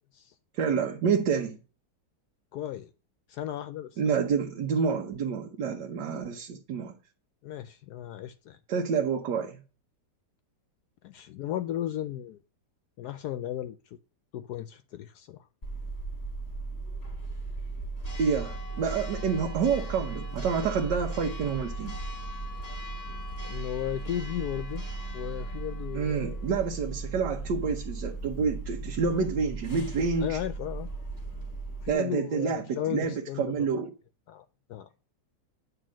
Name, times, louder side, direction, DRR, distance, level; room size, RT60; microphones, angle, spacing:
voice 1, 0.6-1.6 4.0-6.9 8.7-9.6 18.2-22.0 25.9-30.4 31.9-33.9, right 6 dB, 80° right, 1.5 m, -28 dB
voice 2, 2.5-2.9 3.3-4.1 7.4-8.6 11.0-12.4 13.0-13.8 14.3-15.5 23.4-24.9 25.1-26.4 30.2-30.9 31.8-33.5 34.3-34.4 34.7-34.9, left 12 dB, 75° left, 1.0 m, -35 dB
Church bell, 15.6-31.9, right 2 dB, 25° left, 1.4 m, -37 dB
8.9 x 3.4 x 6.1 m
omnidirectional pair, 1.9 m